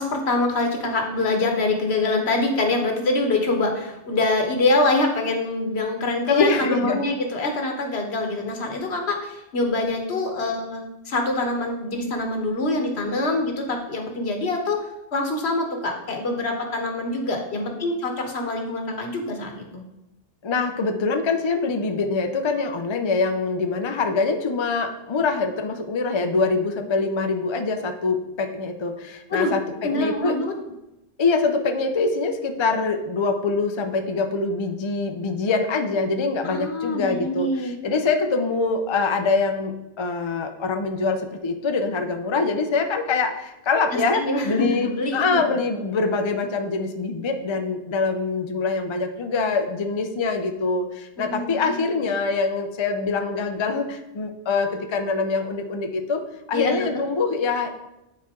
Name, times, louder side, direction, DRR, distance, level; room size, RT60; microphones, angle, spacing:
voice 1, 0.0-19.8 29.3-29.5 29.8-30.5 36.4-37.7 43.9-45.4 51.2-51.8 56.5-57.0, left 2 dB, 65° left, 3 dB, 1.3 m, -25 dB
voice 2, 6.3-7.0 20.4-30.4 31.2-56.2 56.5-57.7, left 4 dB, 40° left, 5 dB, 0.4 m, -24 dB
9.5 x 4.3 x 3.6 m, 0.94 s
omnidirectional pair, 1.2 m